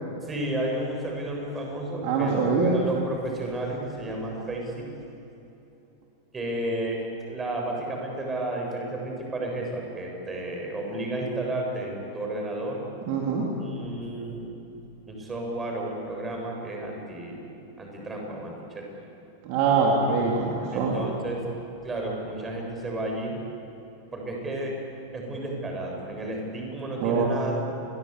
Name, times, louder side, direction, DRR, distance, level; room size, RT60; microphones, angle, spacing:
voice 1, 0.2-4.9 6.3-12.8 13.6-14.5 15.1-18.9 20.7-21.4 21.8-23.4 24.1-24.8 25.1-27.5, right 1 dB, 15° right, 0 dB, 7.6 m, -32 dB
voice 2, 2.0-2.8 13.1-13.5 19.4-21.0 27.0-27.3, right 4 dB, 45° right, -2 dB, 3.8 m, -23 dB
29.5 x 23.0 x 8.4 m, 3.0 s
figure-of-eight pair, 90°, 0 cm